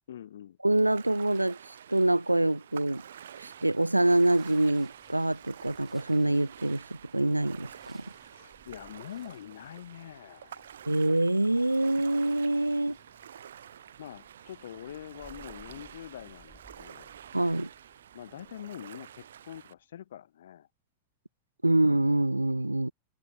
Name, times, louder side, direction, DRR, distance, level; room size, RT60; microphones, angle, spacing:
voice 1, 0.1-0.6 8.2-10.7 12.9-13.0 14.0-17.1 18.1-20.7, left 10 dB, 60° left, 0.5 m, -45 dB
voice 2, 0.6-1.6 1.9-3.0 3.4-6.8 7.1-8.1 10.9-13.0 17.3-17.7 21.6-22.9, right 1 dB, 85° right, 0.3 m, -25 dB
Ocean, 0.7-19.7, right 9 dB, 65° right, 0.8 m, -49 dB
sound 1, 2.7-19.8, right 3 dB, 10° right, 3.0 m, -63 dB
figure-of-eight pair, 90°, 0 cm